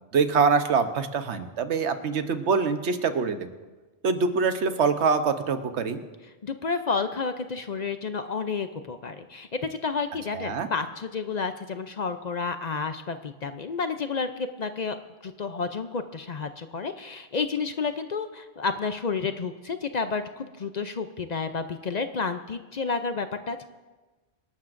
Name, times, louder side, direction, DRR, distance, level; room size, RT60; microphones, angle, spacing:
voice 1, 0.1-3.5 4.0-6.0 10.3-10.7, right 5 dB, 90° right, 9 dB, 1.2 m, -24 dB
voice 2, 6.4-15.0 15.2-23.6, left 4 dB, 50° left, 9 dB, 0.6 m, -30 dB
26.0 x 12.0 x 2.6 m, 1.2 s
omnidirectional pair, 1.1 m